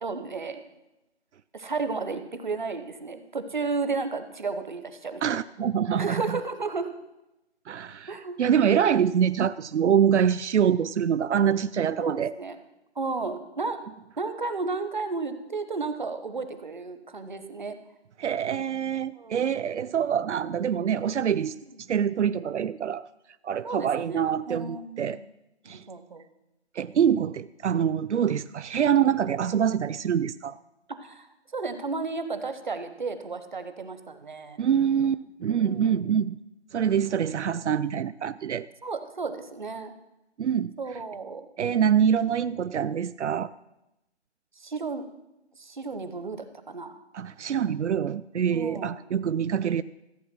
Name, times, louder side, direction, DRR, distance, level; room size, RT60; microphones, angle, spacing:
voice 1, 0.0-0.6 1.5-5.3 6.0-6.9 8.1-8.4 12.0-12.6 13.0-13.8 14.2-17.8 19.1-19.5 23.6-25.2 25.6-26.2 30.9-34.6 35.6-36.2 38.8-39.9 40.8-41.5 44.6-45.1 45.6-47.0 48.5-48.9, right 4 dB, 45° right, 9 dB, 1.0 m, -33 dB
voice 2, 5.2-6.4 7.7-12.3 18.2-21.6 21.9-23.1 23.4-25.2 25.7-25.8 26.7-30.6 34.6-36.4 36.7-38.7 40.4-40.7 41.6-43.5 47.1-49.8, right 8 dB, 85° right, 16 dB, 0.5 m, -25 dB
14.5 x 8.3 x 6.0 m, 0.92 s
figure-of-eight pair, 175°, 34 cm